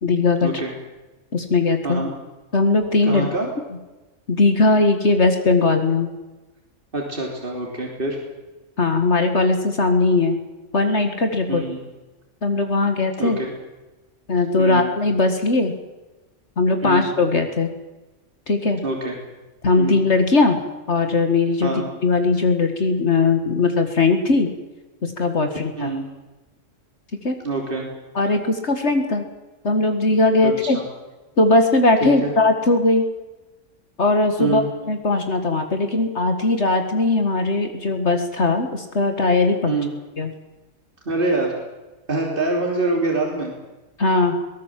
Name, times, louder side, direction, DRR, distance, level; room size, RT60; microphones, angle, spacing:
voice 1, 0.0-0.5 1.3-2.0 2.5-3.3 4.3-6.1 8.8-10.4 10.7-11.6 12.4-13.4 14.3-15.7 16.6-17.7 18.5-18.8 19.6-20.6 20.9-21.7 22.0-24.5 25.0-25.9 27.2-27.4 28.1-29.2 29.6-30.8 31.4-33.1 34.0-34.6 34.9-39.8 40.2-40.3 44.0-44.4, left 3 dB, 60° left, 6 dB, 2.1 m, -19 dB
voice 2, 3.0-3.5 6.9-8.2 11.5-11.8 13.2-13.5 14.6-14.9 16.8-17.1 18.8-19.1 19.8-20.0 21.6-21.8 25.8-26.1 27.4-27.9 30.4-30.8 32.0-32.3 34.4-34.7 39.7-39.9 41.1-41.5 42.1-43.5, right 2 dB, 45° right, 0 dB, 3.5 m, -25 dB
22.0 x 18.5 x 7.6 m, 1.1 s
omnidirectional pair, 1.3 m